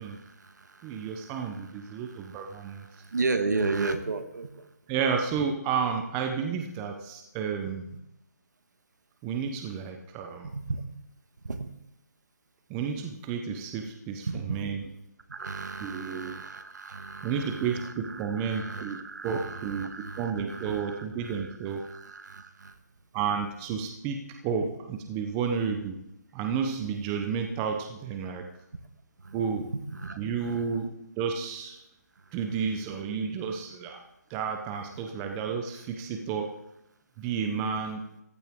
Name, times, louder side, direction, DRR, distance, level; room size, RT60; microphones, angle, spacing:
voice 1, 0.0-4.7 10.4-11.0 11.4-11.7 14.3-14.6 15.3-22.8 24.6-24.7 29.2-30.6, right 3 dB, 75° right, 8 dB, 1.5 m, -35 dB
voice 2, 0.8-2.8 4.9-7.9 9.2-10.5 12.7-14.8 15.8-16.3 17.2-19.9 20.2-21.9 23.1-26.0 26.3-28.4 29.3-29.7 30.2-31.8 32.3-34.0 34.3-36.5 37.2-38.1, right 6 dB, 10° right, 4 dB, 0.7 m, -31 dB
14.5 x 11.5 x 3.6 m, 0.83 s
hypercardioid pair, 170°, 10 cm